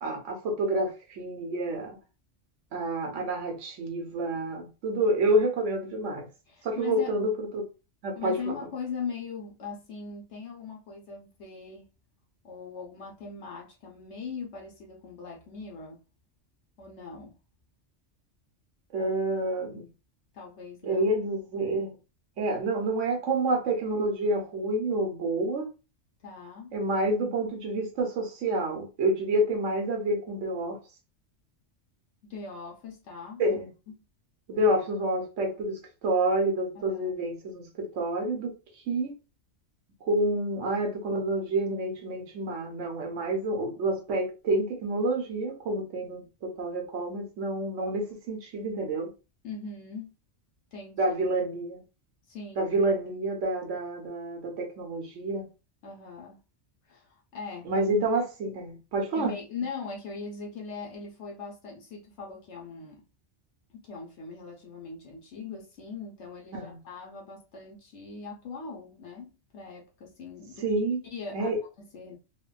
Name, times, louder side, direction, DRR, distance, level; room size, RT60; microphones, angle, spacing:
voice 1, 0.0-2.0 2.7-6.3 6.6-7.7 8.0-8.5 18.9-19.8 20.8-21.9 22.4-25.7 26.7-30.8 33.4-33.7 34.5-38.5 38.9-39.1 40.0-49.1 51.0-51.8 52.6-55.5 57.6-59.3 66.5-66.8 70.6-71.0 71.3-71.6, right 1 dB, 90° right, 1.2 m, -28 dB
voice 2, 6.5-7.1 8.2-11.9 12.4-16.0 16.8-17.4 19.0-19.1 20.3-21.1 26.2-26.7 32.3-33.6 36.7-37.2 49.4-50.1 50.7-51.1 52.3-52.7 55.8-56.4 56.9-57.7 59.1-63.0 63.7-70.8 71.1-72.2, left 5 dB, 70° left, 1.1 m, -40 dB
3.2 x 2.2 x 2.2 m
omnidirectional pair, 1.2 m